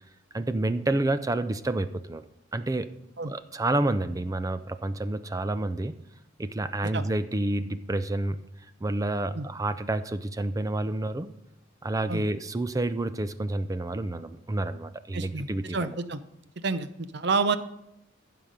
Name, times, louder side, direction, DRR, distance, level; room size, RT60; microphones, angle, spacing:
voice 1, 0.3-2.2 2.5-2.9 3.3-5.9 6.4-8.4 8.8-11.3 11.8-16.0, right 2 dB, 15° right, 12 dB, 0.4 m, -29 dB
voice 2, 15.1-16.2 16.6-16.9 17.1-17.6, right 4 dB, 55° right, 12 dB, 0.7 m, -28 dB
15.0 x 5.9 x 5.3 m, 0.82 s
head